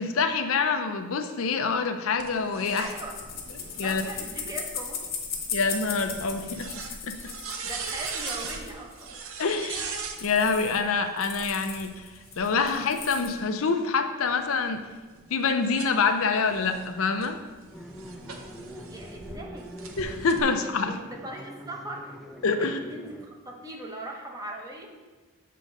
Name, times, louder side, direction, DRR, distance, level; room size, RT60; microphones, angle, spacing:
voice 1, 0.0-2.9 3.8-4.0 5.5-6.7 7.0-7.2 9.4-14.8 15.3-17.4 20.0-21.0 22.4-22.8, left 4 dB, 80° left, 7 dB, 0.5 m, -26 dB
sound 1, 2.2-10.2 11.3-13.7 14.3-19.3 19.8-20.4, right 5 dB, 80° right, 0.8 m, -41 dB
voice 2, 2.5-3.2 3.8-5.1 7.6-9.2 18.7-19.7 20.3-20.5 20.9-22.2 22.6-24.9, right 1 dB, 15° right, 0 dB, 0.8 m, -40 dB
sound 2, 2.6-9.1 9.5-9.6 9.9-10.0 10.2-10.9 11.2-13.3, left 6 dB, 45° left, 0.9 m, -38 dB
sound 3, 17.7-23.3, equal, ahead, 0.4 m, -43 dB
7.6 x 3.8 x 5.2 m, 1.3 s
head